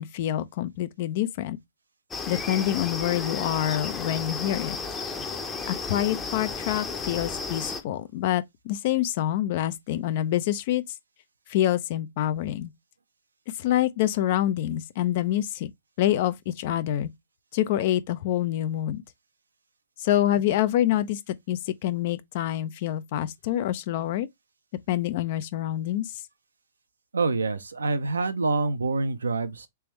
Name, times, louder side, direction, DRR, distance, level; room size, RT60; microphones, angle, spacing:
voice 1, 0.0-1.6 2.3-4.8 5.7-10.8 11.5-12.7 13.6-15.7 16.0-17.1 17.5-19.0 20.0-24.3 24.9-26.1, left 12 dB, 55° left, 0.5 m, -26 dB
sound 1, 2.1-7.8, left 4 dB, 15° left, 0.7 m, -33 dB
voice 2, 27.1-29.7, right 3 dB, 85° right, 0.6 m, -26 dB
3.4 x 3.3 x 3.1 m
hypercardioid pair, 110°, 0 cm